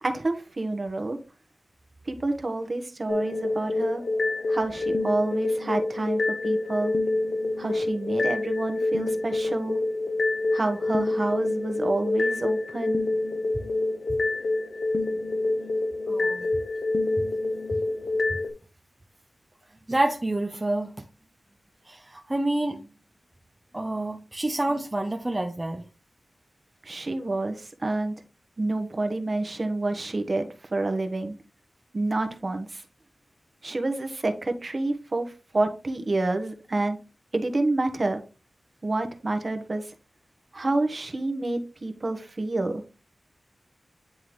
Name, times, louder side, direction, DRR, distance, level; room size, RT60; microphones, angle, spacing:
voice 1, 0.0-1.2 2.1-4.0 4.5-6.9 7.6-9.8 10.5-13.0 26.8-28.1 28.6-31.3 31.9-32.8 33.6-37.0 37.3-38.2 38.8-39.9 40.5-42.8, right 2 dB, 40° right, 6 dB, 1.1 m, -28 dB
sound 1, 3.1-18.5, left 2 dB, 70° left, 0.9 m, -27 dB
voice 2, 16.1-16.5 19.9-21.0 21.9-22.9 23.7-25.9, right 1 dB, 20° right, 4 dB, 0.6 m, -28 dB
9.6 x 3.7 x 3.1 m, 0.32 s
wide cardioid pair, 115°, 0 cm